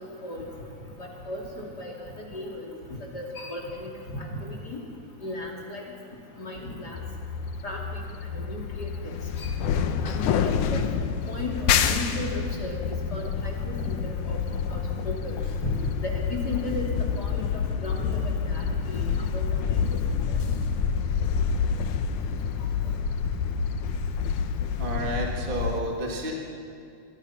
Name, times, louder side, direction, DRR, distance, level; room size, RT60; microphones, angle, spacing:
voice 1, 1.0-1.9 2.3-2.6 3.0-4.8 5.2-5.8 6.4-7.0 7.6-8.0 8.3-9.1 9.4-9.5 10.0-10.8 11.3-12.8 13.1-14.4 14.7-15.3 15.6-15.7 16.0-16.9 17.2-19.1 19.3-19.5 19.9-20.0, left 2 dB, 25° left, 0 dB, 2.9 m, -35 dB
sound 1, 6.9-25.8, left 6 dB, 70° left, 1.9 m, -28 dB
voice 2, 24.8-26.3, right 1 dB, 25° right, -1 dB, 1.2 m, -30 dB
25.0 x 24.5 x 5.9 m, 2.5 s
omnidirectional pair, 4.7 m